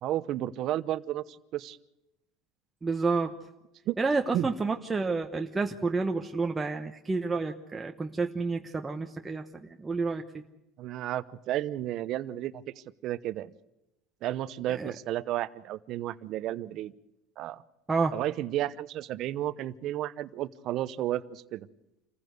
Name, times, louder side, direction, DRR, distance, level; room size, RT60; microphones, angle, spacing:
voice 1, 0.0-1.8 3.9-4.0 4.3-4.5 10.8-12.6 13.0-13.5 14.2-16.9 17.4-17.6 18.1-21.7, right 13 dB, 55° right, 15 dB, 0.9 m, -32 dB
voice 2, 2.8-3.4 4.0-10.2 14.8-14.9 17.9-18.2, right 4 dB, 15° right, 3 dB, 1.1 m, -29 dB
27.0 x 15.5 x 8.0 m, 0.91 s
supercardioid pair, 115°, 0 cm